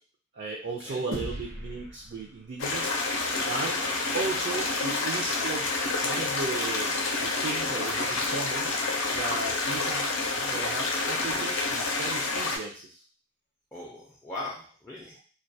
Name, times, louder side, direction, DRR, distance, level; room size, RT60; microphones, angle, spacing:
voice 1, 0.3-2.9 3.4-3.8 4.1-5.7 6.0-6.9 7.2-8.7 9.1-10.1 10.3-12.8, right 3 dB, 55° right, -2 dB, 0.4 m, -35 dB
sound 1, 1.1-3.7, equal, 85° right, 0.7 m, -40 dB
sound 2, 2.6-12.6, left 3 dB, 80° left, 0.5 m, -28 dB
voice 2, 3.7-4.0 13.7-15.2, left 2 dB, 15° left, -5 dB, 0.4 m, -40 dB
2.2 x 2.2 x 2.6 m, 0.40 s
head